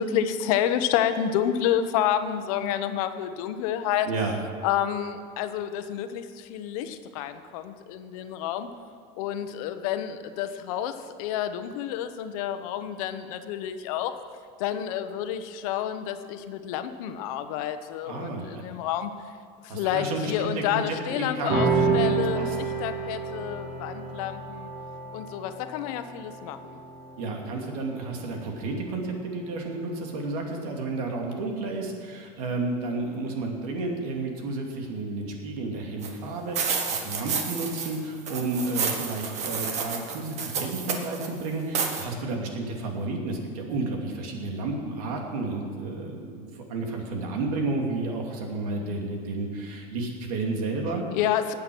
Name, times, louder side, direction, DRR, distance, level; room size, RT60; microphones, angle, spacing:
voice 1, 0.0-4.1 4.6-8.7 9.2-14.1 14.6-19.1 19.6-24.7 25.1-26.8 51.1-51.5, left 10 dB, 75° left, 9 dB, 1.1 m, -29 dB
voice 2, 4.0-4.4 18.1-18.6 19.7-22.6 27.2-51.1, right 3 dB, 90° right, 1 dB, 2.7 m, -31 dB
sound 1, 21.5-28.2, right 4 dB, 65° right, 4.0 m, -29 dB
sound 2, 36.0-36.1 36.5-38.0 38.3-41.3 41.7-42.0, right 5 dB, 35° right, 1.6 m, -30 dB
18.5 x 8.4 x 6.2 m, 2.1 s
cardioid pair, 155°, 19 cm